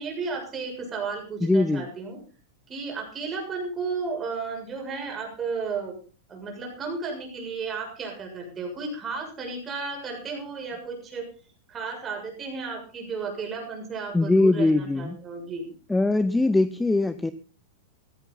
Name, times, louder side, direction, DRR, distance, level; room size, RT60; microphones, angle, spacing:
voice 1, 0.0-2.2 2.7-5.9 6.3-11.3 11.7-15.7, right 4 dB, 20° right, 2 dB, 6.9 m, -33 dB
voice 2, 1.4-1.8 14.1-15.2 15.9-17.3, left 2 dB, 5° left, 14 dB, 0.7 m, -21 dB
16.0 x 14.5 x 4.0 m, 0.38 s
hypercardioid pair, 135°, 0 cm